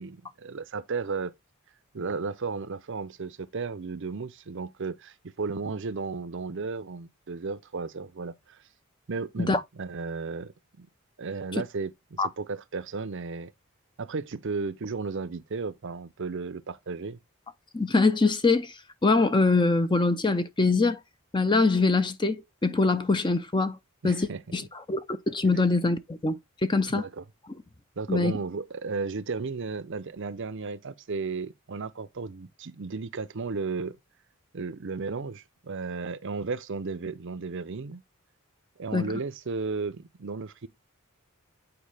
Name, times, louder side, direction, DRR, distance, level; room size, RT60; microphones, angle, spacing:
voice 1, 0.0-1.3 1.9-8.6 9.1-10.9 11.2-13.5 14.0-17.2 24.0-24.4 26.9-27.2 28.0-34.0 34.5-38.0 38.8-40.7, right 4 dB, 55° right, 0.6 m, -34 dB
voice 2, 17.7-18.7 19.0-21.0 21.3-23.8 24.0-24.3 24.5-26.4 26.6-27.0 28.1-28.4 38.9-39.1, left 3 dB, 20° left, 0.6 m, -23 dB
8.8 x 4.6 x 3.4 m
head